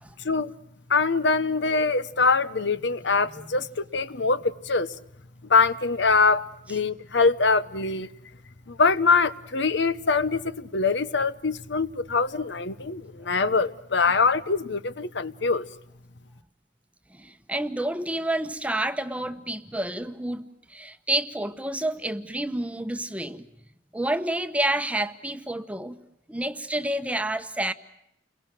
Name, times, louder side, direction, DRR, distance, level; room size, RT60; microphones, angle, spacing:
voice 1, 0.9-4.9 5.5-8.1 8.7-15.6, left 4 dB, 65° left, 1.0 m, -23 dB
voice 2, 17.1-20.4 20.7-23.4 23.9-26.0 26.3-27.7, right 1 dB, 5° right, 1.1 m, -29 dB
30.0 x 22.5 x 7.6 m
head